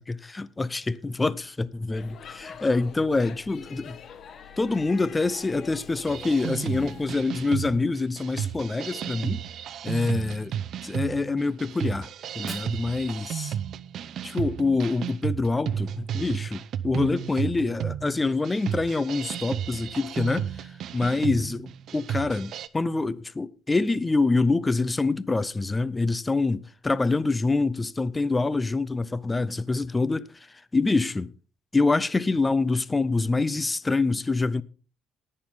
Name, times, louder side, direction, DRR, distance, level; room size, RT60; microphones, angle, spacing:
voice 1, 0.0-4.0 4.6-9.4 9.8-10.5 10.8-12.1 12.4-13.6 14.2-20.7 20.9-30.3 30.7-31.3 31.7-34.6, left 3 dB, 15° left, 0.6 m, -26 dB
Speech / Shout / Subway metro underground, 1.9-7.2, left 7 dB, 50° left, 1.1 m, -45 dB
sound 1, 6.1-22.7, right 9 dB, 60° right, 0.7 m, -33 dB
Fire, 12.2-14.2, right 2 dB, 15° right, 2.7 m, -47 dB
19.5 x 6.7 x 3.8 m
cardioid pair, 110°, 0 cm